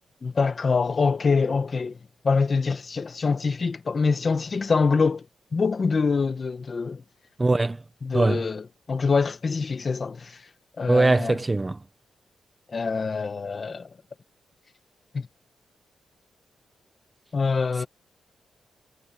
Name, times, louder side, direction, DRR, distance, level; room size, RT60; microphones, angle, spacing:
voice 1, 0.2-2.0 2.2-5.2 5.5-7.0 8.0-10.4 10.8-11.4 12.7-13.9 15.1-15.3 17.3-17.9, left 4 dB, 35° left, 1.6 m, -25 dB
voice 2, 7.4-7.8 8.1-8.4 10.9-11.8, right 2 dB, 20° right, 1.0 m, -21 dB
cardioid pair, 115°, 0 cm